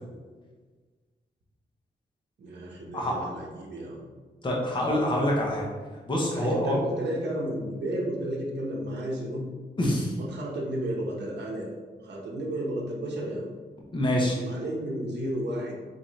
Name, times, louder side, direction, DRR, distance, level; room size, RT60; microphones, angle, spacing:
voice 1, 2.4-4.0 6.3-9.4 10.2-11.7 12.0-13.5 14.3-15.7, right 1 dB, 70° right, -3 dB, 0.8 m, -32 dB
voice 2, 4.4-5.7 6.1-6.7 9.8-10.1 13.9-14.4, left 1 dB, 25° left, -3 dB, 0.8 m, -26 dB
4.2 x 3.7 x 3.2 m, 1.4 s
wide cardioid pair, 155°, 18 cm